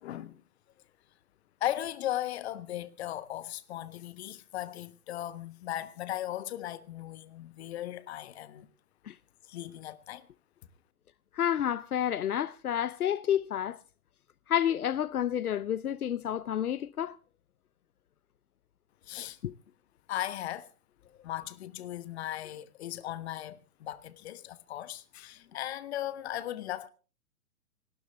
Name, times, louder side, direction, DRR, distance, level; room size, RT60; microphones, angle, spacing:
voice 1, 0.0-0.4 1.6-8.7 9.4-10.3 19.1-19.4 20.1-20.7 21.2-26.9, left 13 dB, 45° left, 1.3 m, -37 dB
voice 2, 11.3-13.8 14.5-17.2 19.4-19.5, left 10 dB, 80° left, 0.7 m, -30 dB
26.5 x 12.5 x 3.4 m
hypercardioid pair, 135°, 43 cm